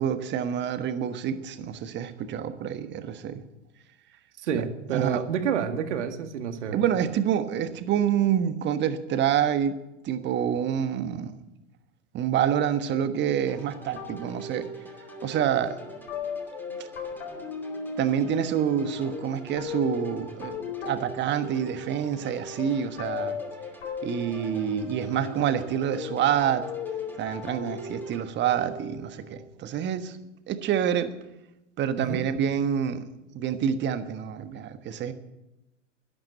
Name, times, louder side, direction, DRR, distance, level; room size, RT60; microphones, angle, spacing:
voice 1, 0.0-3.4 4.5-4.6 4.9-5.2 6.7-9.8 10.0-11.3 12.1-14.7 15.2-15.8 18.0-20.6 20.8-23.4 24.0-26.6 27.2-30.2 30.5-31.1 31.8-33.0 33.3-35.1, right 9 dB, 30° right, 10 dB, 1.3 m, -27 dB
voice 2, 4.4-6.8 32.0-32.3, right 7 dB, 65° right, 7 dB, 2.1 m, -29 dB
sound 1, 13.5-28.2, left 1 dB, 5° left, 2.6 m, -48 dB
sound 2, 14.0-29.3, left 5 dB, 60° left, 4.8 m, -37 dB
12.0 x 12.0 x 9.0 m, 0.95 s
figure-of-eight pair, 100°, 38 cm